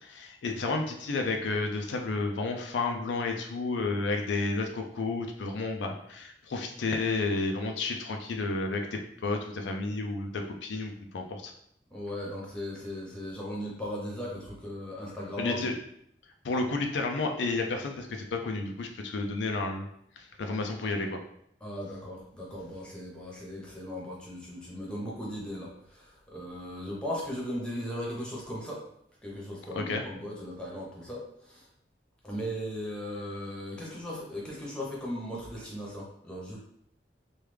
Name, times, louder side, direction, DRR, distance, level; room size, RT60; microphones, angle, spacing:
voice 1, 0.0-11.5 15.4-15.7 16.4-19.9 20.2-21.2 29.7-30.0, left 3 dB, 90° left, 3 dB, 0.4 m, -31 dB
voice 2, 11.9-15.7 21.6-28.8 29.2-31.6 32.2-36.6, equal, 5° left, -4 dB, 0.8 m, -37 dB
3.2 x 2.2 x 3.3 m, 0.72 s
head